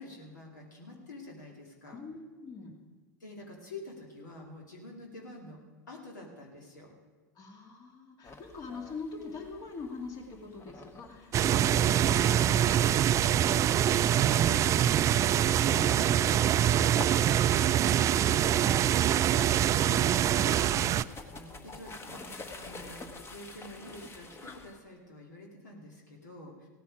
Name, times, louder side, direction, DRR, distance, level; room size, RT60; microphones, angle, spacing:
voice 1, 0.0-2.0 3.2-5.6 5.9-6.9 17.4-26.7, left 1 dB, 90° left, -1 dB, 2.5 m, -47 dB
voice 2, 1.9-2.8 7.3-16.9 20.5-20.9, left 4 dB, 45° left, 1 dB, 2.3 m, -44 dB
sound 1, 8.2-24.8, left 3 dB, 25° left, 1.3 m, -49 dB
sound 2, 11.3-21.0, right 10 dB, 35° right, 0.3 m, -24 dB
16.5 x 9.4 x 5.0 m, 1.4 s
hypercardioid pair, 90°, 9 cm